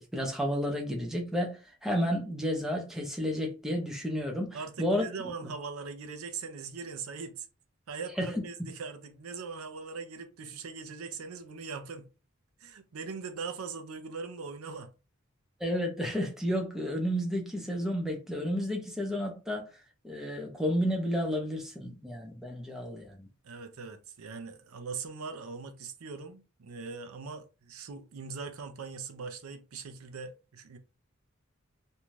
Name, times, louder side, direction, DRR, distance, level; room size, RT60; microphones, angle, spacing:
voice 1, 0.0-5.0 8.2-8.4 15.6-19.7 20.0-23.3, equal, ahead, 0.6 m, -31 dB
voice 2, 4.5-7.5 7.9-12.1 12.6-14.9 23.4-30.8, right 5 dB, 90° right, 0.5 m, -41 dB
2.6 x 2.3 x 3.1 m
head